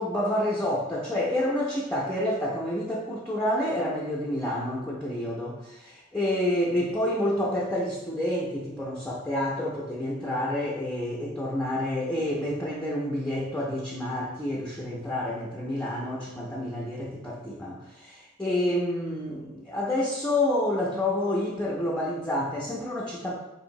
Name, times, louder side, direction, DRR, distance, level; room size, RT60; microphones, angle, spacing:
voice 1, 0.0-23.4, left 1 dB, 5° left, -5 dB, 0.4 m, -29 dB
4.4 x 2.9 x 2.6 m, 0.98 s
head